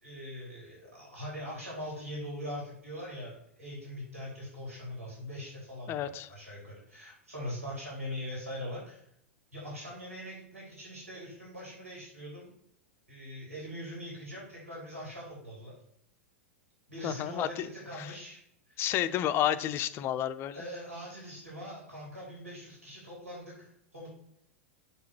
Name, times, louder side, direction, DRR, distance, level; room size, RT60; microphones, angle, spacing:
voice 1, 0.0-9.1 9.5-12.5 13.1-15.7 16.9-18.4 18.7-19.0 20.5-24.1, equal, 90° right, -5 dB, 3.7 m, -42 dB
voice 2, 5.9-6.3 17.0-17.7 18.0-18.1 18.8-20.6, left 11 dB, 30° left, 13 dB, 0.5 m, -31 dB
6.8 x 4.8 x 5.9 m, 0.73 s
figure-of-eight pair, 95°, 7 cm